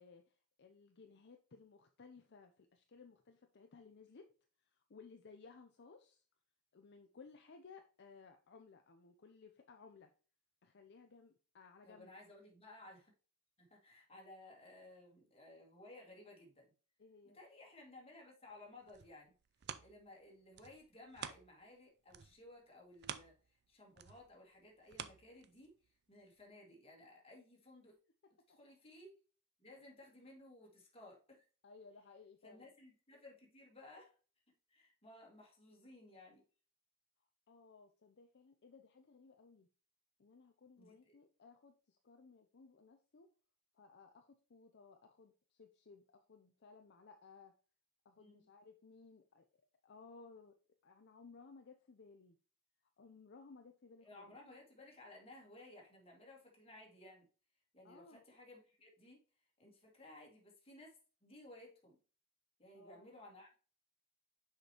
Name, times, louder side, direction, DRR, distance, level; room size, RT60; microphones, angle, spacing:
voice 1, 0.0-4.2 4.6-6.2 6.7-10.1 10.6-12.1 17.0-17.4 31.6-32.7 37.5-39.7 40.2-43.3 43.7-47.5 48.0-49.5 49.8-50.5 50.8-52.4 53.0-54.4 57.8-58.2 62.7-63.2, left 4 dB, 50° left, 5 dB, 0.6 m, -60 dB
voice 2, 11.8-13.1 13.6-16.7 17.3-19.3 19.8-25.7 26.1-28.0 28.5-29.1 29.6-31.4 32.4-34.2 34.7-36.4 40.8-41.2 48.2-48.4 54.0-57.3 57.7-59.2 59.6-62.0 62.6-63.6, left 2 dB, 25° left, -1 dB, 2.1 m, -58 dB
sound 1, 18.6-21.8 22.1-25.9 26.4-26.5, right 8 dB, 50° right, 0.5 m, -50 dB
6.5 x 5.1 x 2.9 m, 0.37 s
head